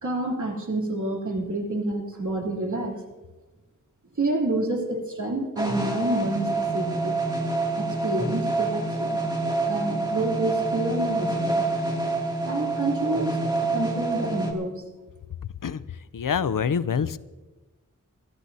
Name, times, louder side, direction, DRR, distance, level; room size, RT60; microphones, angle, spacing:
voice 1, 0.0-3.0 4.2-7.1 7.8-9.2 9.7-11.6 12.4-13.3 13.7-14.7, right 2 dB, 65° right, -1 dB, 3.2 m, -28 dB
sound 1, 5.6-14.5, right 2 dB, 10° right, 2.5 m, -27 dB
voice 2, 15.6-17.2, left 7 dB, 75° left, 15 dB, 0.6 m, -26 dB
25.0 x 13.5 x 2.8 m, 1.2 s
wide cardioid pair, 50°, 33 cm